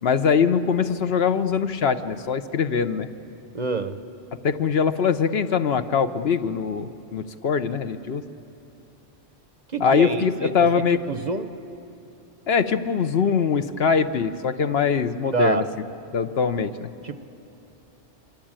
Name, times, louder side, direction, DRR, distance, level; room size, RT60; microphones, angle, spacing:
voice 1, 0.0-3.1 4.4-8.2 9.8-11.0 12.5-15.6 16.1-16.9, left 6 dB, 60° left, 10 dB, 1.0 m, -22 dB
voice 2, 3.5-4.0 9.7-10.5 11.1-11.5 15.3-15.7 17.0-17.2, right 4 dB, 40° right, 10 dB, 0.8 m, -26 dB
25.0 x 24.5 x 8.9 m, 2.8 s
omnidirectional pair, 1.2 m